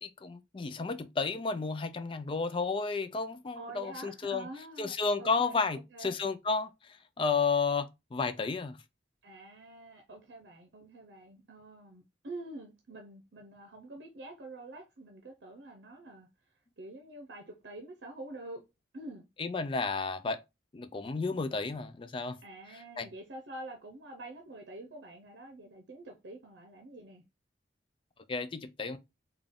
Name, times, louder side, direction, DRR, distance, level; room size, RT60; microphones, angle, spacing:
voice 1, 0.0-4.5 4.8-8.8 19.4-20.4 20.7-22.4 23.0-23.1 28.3-29.0, left 4 dB, 30° left, 0.4 m, -32 dB
voice 2, 3.5-6.2 9.2-16.3 16.8-18.6 18.9-19.3 22.4-27.2, right 2 dB, 75° right, 0.7 m, -47 dB
3.7 x 2.3 x 3.6 m
head